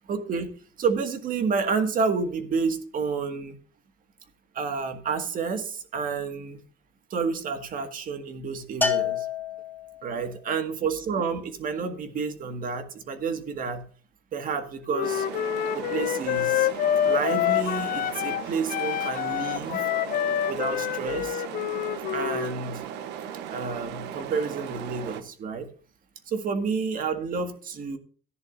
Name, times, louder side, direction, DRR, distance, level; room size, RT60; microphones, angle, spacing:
voice 1, 0.1-0.5 0.8-3.6 4.6-6.6 7.1-9.3 10.0-13.8 14.3-15.3 15.7-16.7 17.0-19.9 20.5-21.4 22.1-22.8 23.5-25.7 26.3-28.0, right 5 dB, 55° right, 7 dB, 1.9 m, -30 dB
Bell, 8.8-10.2, left 6 dB, 10° left, 1.5 m, -28 dB
Wind instrument woodwind instrument, 14.9-18.4 18.7-22.6, left 11 dB, 60° left, 0.5 m, -27 dB
sound 1, 15.0-25.2, right 9 dB, 90° right, 1.0 m, -37 dB
14.5 x 10.5 x 2.6 m, 0.40 s
cardioid pair, 110°, 17 cm